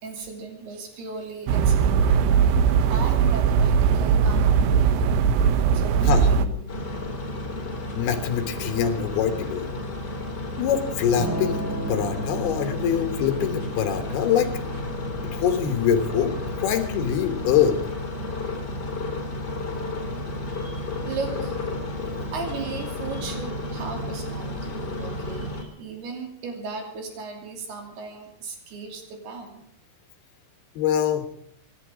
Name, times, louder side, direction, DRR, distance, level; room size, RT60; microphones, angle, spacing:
voice 1, 0.0-2.3 2.9-5.1 5.7-6.8 20.5-21.6 22.3-29.6, right 4 dB, 60° right, 3 dB, 4.6 m, -36 dB
sound 1, 1.5-6.5, right 6 dB, 75° right, 2.8 m, -19 dB
sound 2, 6.7-25.6, left 2 dB, 25° left, 3.2 m, -32 dB
voice 2, 8.0-9.7 10.6-11.6 11.9-14.5 15.3-17.8 30.8-31.3, left 9 dB, 70° left, 7 dB, 2.7 m, -24 dB
Electric guitar / Strum, 11.1-20.9, equal, 25° right, 1.5 m, -36 dB
25.5 x 11.0 x 5.0 m, 0.70 s
omnidirectional pair, 5.6 m